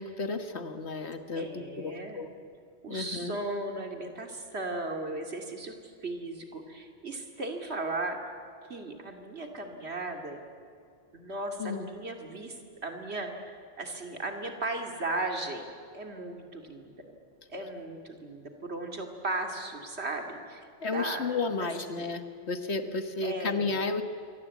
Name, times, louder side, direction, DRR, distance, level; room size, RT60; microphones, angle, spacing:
voice 1, 0.0-2.3 2.9-3.4 11.6-11.9 20.8-24.0, left 3 dB, 85° left, 8 dB, 1.8 m, -33 dB
voice 2, 1.3-2.3 2.8-5.7 6.0-8.2 8.7-10.4 11.1-15.7 15.9-17.1 17.5-22.2 23.2-23.8, right 2 dB, 75° right, 4 dB, 2.9 m, -36 dB
27.5 x 24.0 x 8.4 m, 2.3 s
omnidirectional pair, 1.1 m